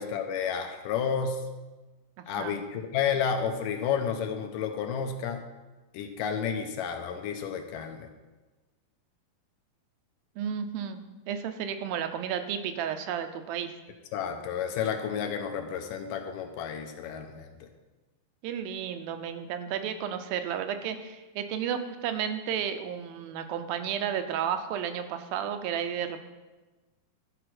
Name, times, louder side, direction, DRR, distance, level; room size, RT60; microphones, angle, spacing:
voice 1, 0.0-1.4 2.3-5.4 5.9-8.1 14.1-17.7, left 7 dB, 80° left, 5 dB, 2.2 m, -31 dB
voice 2, 2.2-2.6 10.4-13.7 18.4-26.2, right 8 dB, 90° right, 8 dB, 2.5 m, -32 dB
12.0 x 4.8 x 5.9 m, 1.2 s
omnidirectional pair, 4.1 m